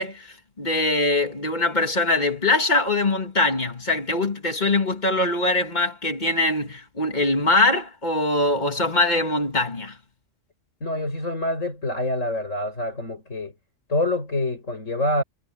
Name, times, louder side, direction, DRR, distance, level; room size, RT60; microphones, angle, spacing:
voice 1, 0.0-10.0, left 2 dB, 35° left, 2.6 m, -22 dB
voice 2, 10.8-13.5 13.9-15.2, left 1 dB, 80° left, 7.1 m, -26 dB
omnidirectional pair, 1.3 m